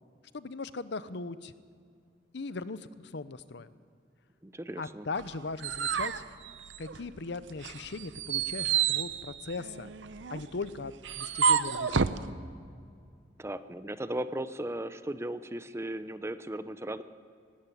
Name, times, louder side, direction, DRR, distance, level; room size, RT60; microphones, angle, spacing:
voice 1, 0.3-1.5 2.3-3.7 4.8-6.2 6.8-9.9 10.3-12.1, left 3 dB, 65° left, 14 dB, 0.7 m, -39 dB
voice 2, 4.4-5.1 13.4-17.0, right 1 dB, 15° right, 12 dB, 0.7 m, -36 dB
sound 1, 5.2-7.2 7.6-12.2, right 7 dB, 80° right, 0.7 m, -30 dB
17.5 x 16.5 x 9.9 m, 2.2 s
head